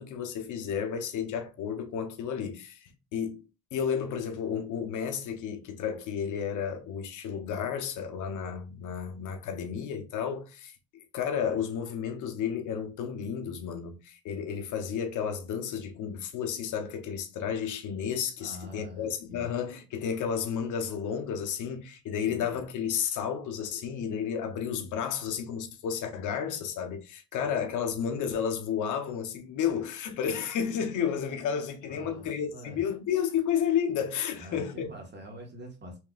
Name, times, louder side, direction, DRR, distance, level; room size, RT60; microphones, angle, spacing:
voice 1, 0.0-3.4 3.7-10.8 11.1-34.9, left 7 dB, 85° left, 0.9 m, -32 dB
voice 2, 18.4-19.5 22.2-22.6 27.4-27.5 31.9-32.8 34.4-36.0, equal, 35° right, 1.6 m, -45 dB
4.6 x 3.3 x 2.5 m
cardioid pair, 90°, 30 cm